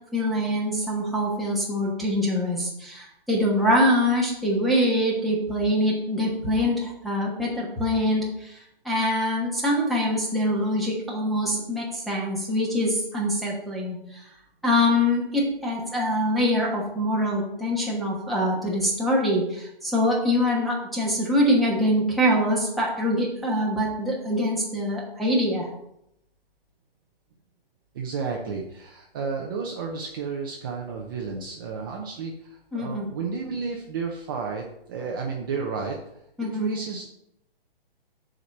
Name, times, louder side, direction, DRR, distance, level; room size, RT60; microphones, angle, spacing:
voice 1, 0.1-8.5 8.8-14.0 14.6-25.7 32.7-33.1 36.4-36.7, equal, ahead, -6 dB, 1.2 m, -24 dB
voice 2, 27.9-37.1, right 5 dB, 20° right, 0 dB, 0.7 m, -32 dB
7.0 x 5.1 x 6.6 m, 0.79 s
hypercardioid pair, 160°, 30 cm